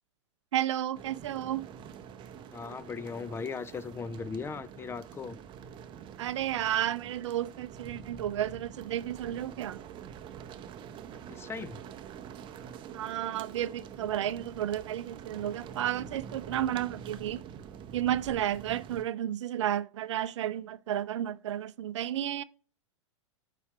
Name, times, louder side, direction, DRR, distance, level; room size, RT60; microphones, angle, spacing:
voice 1, 0.5-1.7 6.2-9.8 12.9-17.4 17.9-22.4, right 11 dB, 65° right, 0.5 m, -32 dB
sound 1, 0.9-19.0, right 8 dB, 30° right, 0.7 m, -46 dB
voice 2, 2.5-5.4 11.1-11.8, left 5 dB, 15° left, 0.5 m, -38 dB
7.0 x 4.9 x 4.5 m
hypercardioid pair, 100°, 16 cm